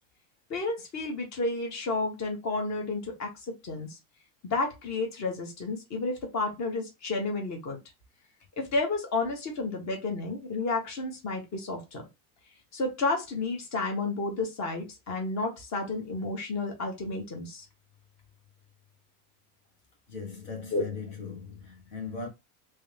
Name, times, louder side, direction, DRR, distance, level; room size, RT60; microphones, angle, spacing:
voice 1, 0.5-3.3 3.6-4.0 4.4-7.8 8.6-12.0 12.7-17.6 20.7-20.8, left 3 dB, 35° left, 1.6 m, -31 dB
voice 2, 20.1-22.3, left 5 dB, 70° left, 1.7 m, -39 dB
3.3 x 3.3 x 3.4 m
supercardioid pair, 110°, 45 cm